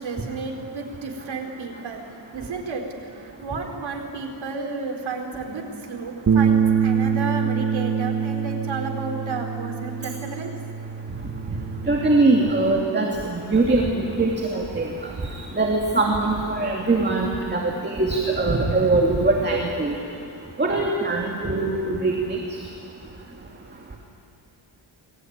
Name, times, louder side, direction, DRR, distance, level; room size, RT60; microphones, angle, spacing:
voice 1, 0.0-2.0 2.3-10.5, right 4 dB, 70° right, 2 dB, 4.3 m, -32 dB
Bass guitar, 6.3-12.5, right 7 dB, 40° right, 1.2 m, -24 dB
voice 2, 11.9-14.9 15.6-20.0 20.6-22.4, right 2 dB, 20° right, -1 dB, 2.5 m, -22 dB
28.0 x 21.0 x 9.6 m, 2.5 s
wide cardioid pair, 160°, 47 cm